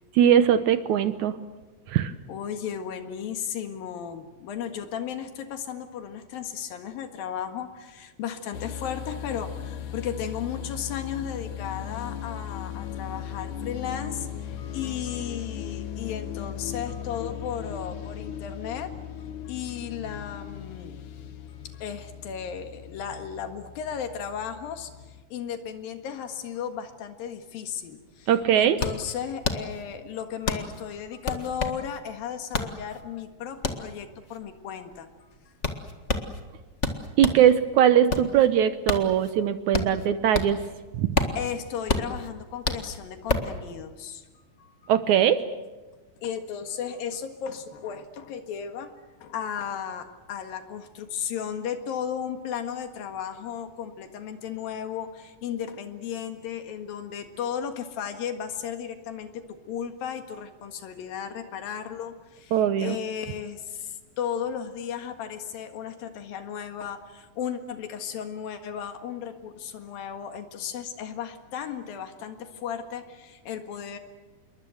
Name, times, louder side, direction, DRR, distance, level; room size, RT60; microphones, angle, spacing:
voice 1, 0.2-1.4 1.9-2.1 28.3-28.8 37.2-40.6 40.9-41.1 44.9-45.4 62.5-63.0, right 10 dB, 70° right, 11 dB, 2.0 m, -20 dB
voice 2, 2.3-18.9 19.2-20.9 21.5-35.1 35.7-35.8 41.4-44.3 44.6-44.9 46.2-48.9 49.2-74.0, left 8 dB, 85° left, 7 dB, 3.5 m, -35 dB
sound 1, 8.5-25.2, left 9 dB, 65° left, 2.8 m, -37 dB
sound 2, 27.8-27.9 28.2-37.5 37.9-40.7 41.0-43.6, left 3 dB, 40° left, 1.0 m, -30 dB
27.5 x 22.5 x 7.9 m, 1.2 s
omnidirectional pair, 4.0 m